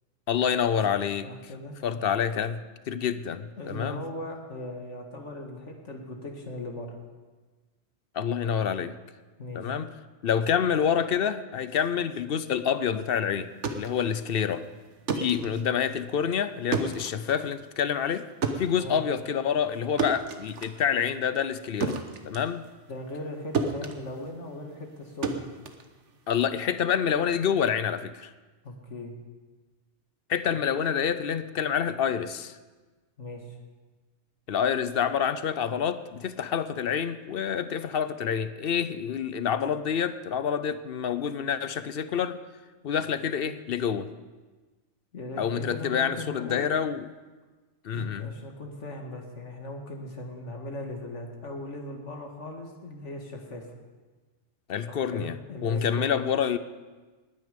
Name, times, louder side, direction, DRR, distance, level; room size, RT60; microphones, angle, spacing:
voice 1, 0.3-1.3 1.8-4.0 8.1-9.0 9.5-9.9 10.2-14.6 15.1-18.3 18.6-22.0 22.2-22.7 26.3-28.3 30.3-32.6 34.5-42.4 42.8-44.1 45.4-47.0 47.8-48.3 54.7-56.6, left 8 dB, 60° left, 13 dB, 0.8 m, -27 dB
voice 2, 1.2-1.7 3.6-7.0 9.4-9.7 18.8-19.0 22.9-25.4 28.6-29.1 33.2-33.6 45.1-46.7 47.9-53.7 54.9-56.2, left 1 dB, 85° left, 2 dB, 2.2 m, -39 dB
sound 1, 13.4-23.3 23.5-26.5, right 4 dB, 80° right, 1.4 m, -34 dB
19.5 x 9.7 x 5.2 m, 1.3 s
omnidirectional pair, 1.2 m